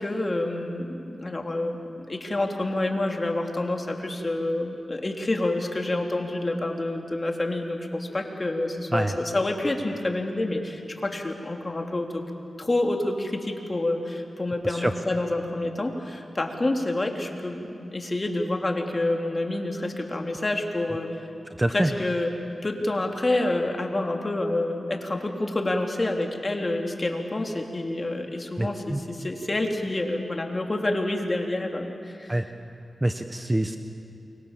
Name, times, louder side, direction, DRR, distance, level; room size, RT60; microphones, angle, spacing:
voice 1, 0.0-1.8 2.1-12.2 12.6-21.1 21.7-22.3 22.6-32.3, left 2 dB, 35° left, 2 dB, 3.3 m, -28 dB
voice 2, 21.6-21.9 28.6-29.0 32.3-32.5 33.0-33.8, right 1 dB, 20° right, 7 dB, 1.1 m, -25 dB
29.0 x 24.0 x 7.5 m, 2.6 s
cardioid pair, 55°, 0 cm